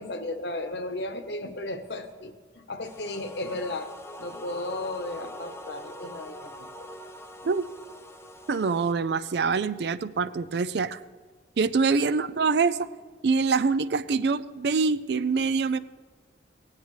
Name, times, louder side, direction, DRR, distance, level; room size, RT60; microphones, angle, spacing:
voice 1, 0.0-6.9, left 2 dB, 70° left, 8 dB, 1.0 m, -35 dB
sound 1, 2.8-8.9, left 1 dB, 15° left, 0.5 m, -44 dB
voice 2, 8.5-11.0 11.6-12.9 13.2-15.8, right 4 dB, 65° right, 14 dB, 0.4 m, -25 dB
17.0 x 9.7 x 3.2 m, 1.5 s
head